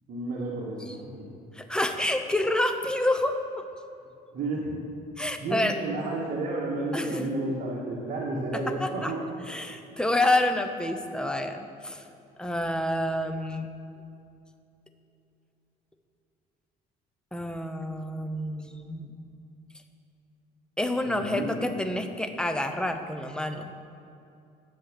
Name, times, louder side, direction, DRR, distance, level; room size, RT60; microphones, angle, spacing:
voice 1, 0.1-1.3 4.3-4.8 5.4-9.2 21.1-21.7, right 2 dB, 55° right, -5 dB, 1.8 m, -31 dB
voice 2, 1.6-3.6 5.2-5.7 6.9-7.3 8.8-9.1 9.5-12.0 12.4-13.7 17.3-19.2 20.8-23.7, left 1 dB, 5° left, 6 dB, 0.8 m, -28 dB
10.5 x 7.5 x 6.7 m, 2.6 s
cardioid pair, 110°, 17 cm